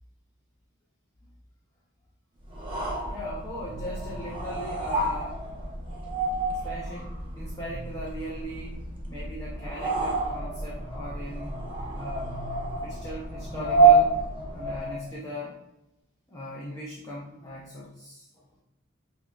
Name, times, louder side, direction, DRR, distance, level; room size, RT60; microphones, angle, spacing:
sound 1, 2.5-15.1, right 3 dB, 25° right, 0.6 m, -28 dB
voice 1, 3.0-5.4 6.5-8.8 9.1-11.6 11.9-12.4 12.8-14.1 14.5-15.6 16.3-18.4, equal, 15° left, -6 dB, 0.6 m, -39 dB
5.9 x 2.3 x 2.3 m, 0.89 s
head